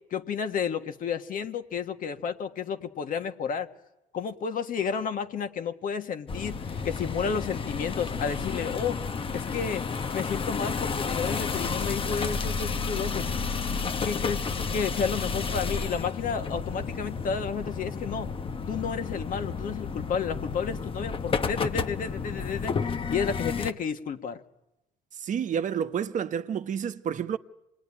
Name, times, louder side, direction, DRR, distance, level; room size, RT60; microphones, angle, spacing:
voice 1, 0.1-3.7 4.1-9.0 9.3-9.8 10.1-13.3 14.0-18.3 18.7-22.8 23.1-24.4, left 6 dB, 55° left, 1.7 m, -31 dB
sound 1, 6.3-23.7, left 5 dB, 30° left, 1.0 m, -31 dB
voice 2, 25.1-27.4, right 8 dB, 50° right, 1.0 m, -30 dB
27.0 x 20.0 x 10.0 m
cardioid pair, 110°, 17 cm